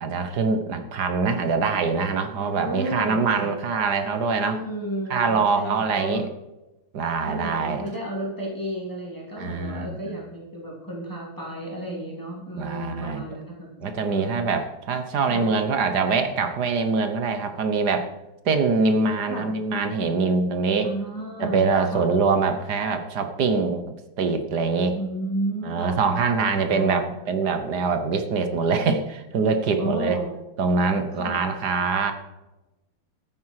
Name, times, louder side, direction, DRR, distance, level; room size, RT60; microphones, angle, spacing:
voice 1, 0.0-4.6 5.1-6.3 6.9-7.8 9.4-10.2 12.6-13.2 13.8-18.1 18.4-20.9 21.4-25.0 25.6-30.2 30.6-32.1, right 4 dB, 55° right, 8 dB, 1.6 m, -24 dB
voice 2, 2.4-3.6 4.5-6.3 7.2-13.7 14.1-14.4 15.2-15.4 19.3-19.5 20.8-22.0 25.0-26.0 26.6-27.0 29.8-30.3 31.1-31.4, right 1 dB, 10° left, -3 dB, 3.4 m, -32 dB
13.5 x 9.6 x 4.8 m, 1.0 s
omnidirectional pair, 2.2 m